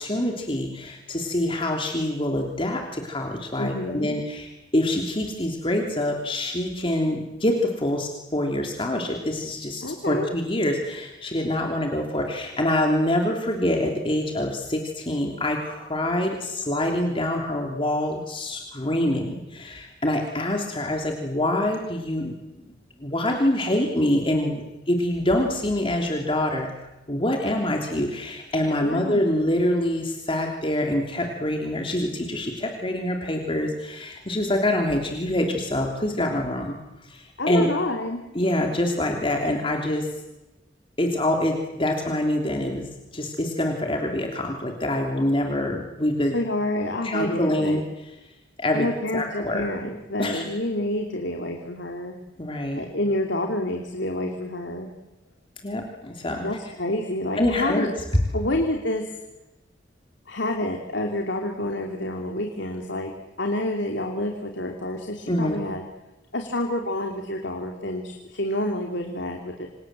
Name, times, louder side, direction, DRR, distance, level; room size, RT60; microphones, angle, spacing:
voice 1, 0.0-22.3 23.0-26.7 27.1-37.7 38.3-40.1 41.0-46.3 47.0-47.8 48.6-48.9 49.1-49.6 50.2-50.4 52.4-52.8 55.6-56.5 57.4-57.9 65.3-65.6, left 1 dB, 30° left, 2 dB, 3.2 m, -25 dB
voice 2, 3.6-4.1 9.8-10.3 28.8-29.2 37.4-38.2 46.3-47.8 48.7-52.1 52.7-54.9 56.4-57.9 58.3-59.0 60.3-65.8 66.3-69.7, left 1 dB, 70° left, 2 dB, 3.1 m, -28 dB
27.5 x 27.5 x 7.7 m, 1.0 s
head